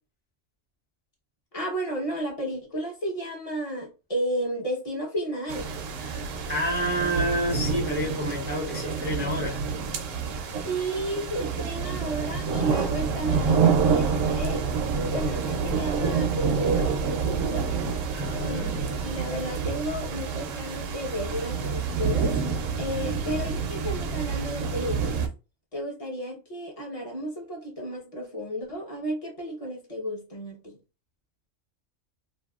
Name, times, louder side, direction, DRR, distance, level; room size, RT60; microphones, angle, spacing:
voice 1, 1.5-5.7 10.6-14.6 14.9-17.7 18.4-22.4 22.8-25.2 25.7-30.8, right 1 dB, 30° left, 0.8 m, -32 dB
sound 1, 5.5-25.3, right 5 dB, 80° right, 0.9 m, -28 dB
voice 2, 6.1-9.6 18.1-18.8, equal, 15° right, 0.4 m, -29 dB
2.8 x 2.7 x 2.3 m
omnidirectional pair, 1.3 m